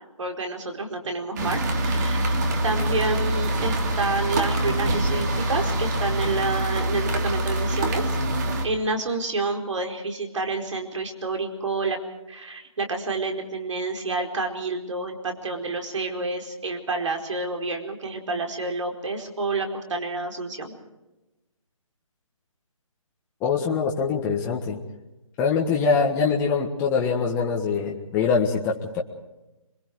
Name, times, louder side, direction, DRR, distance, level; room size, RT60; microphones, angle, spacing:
voice 1, 0.2-2.3 2.6-8.1 8.6-12.0 12.3-20.7, right 3 dB, 60° right, 3 dB, 4.7 m, -29 dB
sound 1, 1.4-8.7, right 1 dB, 30° right, 2.5 m, -25 dB
voice 2, 23.4-24.8 25.4-29.0, left 5 dB, 10° left, -2 dB, 1.6 m, -23 dB
27.5 x 23.5 x 4.7 m, 0.99 s
hypercardioid pair, 160°, 18 cm